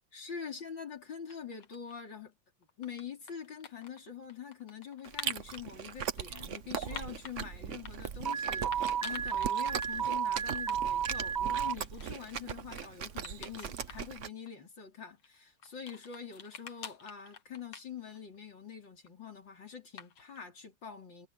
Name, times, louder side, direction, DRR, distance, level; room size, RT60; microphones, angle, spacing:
voice 1, 0.1-2.3 2.8-21.3, left 7 dB, 60° left, 4.6 m, -45 dB
sound 1, 1.1-2.1 2.6-5.6 6.2-7.4 7.7-8.4 8.7-10.0 10.3-10.4 10.6-10.8 11.1-12.4 12.7-12.9 13.2-14.1 14.5-14.6 15.2-18.4 18.7-19.3 20.0-20.4, left 7 dB, 80° left, 2.5 m, -48 dB
Chewing mastication, 5.1-14.3, right 8 dB, 50° right, 1.0 m, -40 dB
Alarm, 8.3-11.7, right 8 dB, 25° right, 1.0 m, -32 dB
omnidirectional pair, 2.2 m